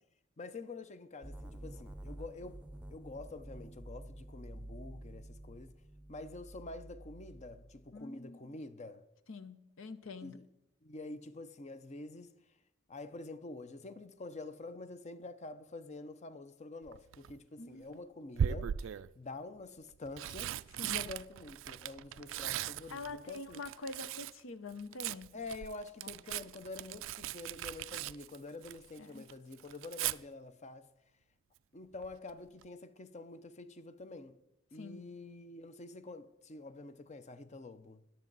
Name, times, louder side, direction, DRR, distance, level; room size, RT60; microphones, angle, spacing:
voice 1, 0.4-2.6 2.9-5.7 6.1-9.0 10.2-10.4 10.8-12.3 12.9-20.6 20.8-23.6 25.3-30.9 31.7-34.4 34.7-38.0, left 2 dB, 35° left, 0.6 m, -47 dB
sound 1, 1.2-8.0, right 1 dB, 5° right, 0.7 m, -49 dB
voice 2, 7.9-8.5 9.3-10.4 17.6-18.0 20.8-21.1 22.9-25.3 26.0-26.4 29.0-29.3 34.7-35.0, left 3 dB, 75° left, 0.8 m, -46 dB
Tearing, 16.9-17.3 18.4-19.1 19.9-24.4 24.7-29.0 29.3-30.2 32.0-32.3 32.6-32.7, right 9 dB, 70° right, 0.3 m, -38 dB
13.5 x 10.5 x 4.0 m
head